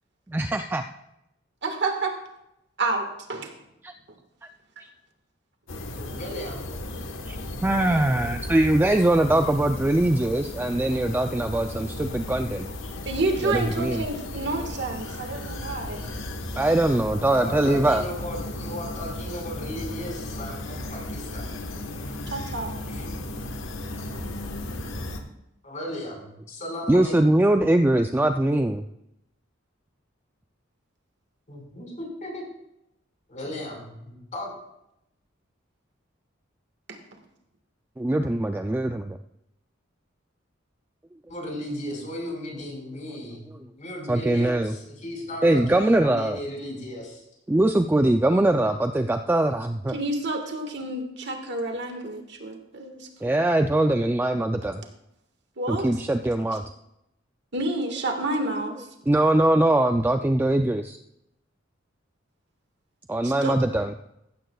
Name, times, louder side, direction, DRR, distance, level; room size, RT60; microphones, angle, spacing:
voice 1, 0.3-0.8 3.8-3.9 7.3-7.4 7.6-12.7 13.4-14.1 16.6-18.0 26.9-28.8 38.0-39.2 44.1-44.7 45.4-46.4 47.5-49.9 53.2-54.8 55.7-56.6 59.1-61.0 63.1-63.9, right 1 dB, 10° right, 6 dB, 0.3 m, -22 dB
voice 2, 1.6-2.1 2.8-3.5 13.0-16.2 22.3-22.7 36.9-37.0 49.9-53.4 55.6-55.9 56.5-56.6 57.5-58.9 63.2-63.6, right 2 dB, 65° right, 4 dB, 1.6 m, -29 dB
sound 1, 5.7-25.2, left 1 dB, 85° left, 1.2 m, -35 dB
voice 3, 6.0-6.7 9.3-9.5 12.8-12.9 17.3-21.8 22.9-23.1 25.6-27.3 31.5-32.4 33.3-34.5 41.3-47.2 48.4-48.8, left 1 dB, 40° left, -1 dB, 4.9 m, -36 dB
15.0 x 13.0 x 2.3 m, 0.83 s
head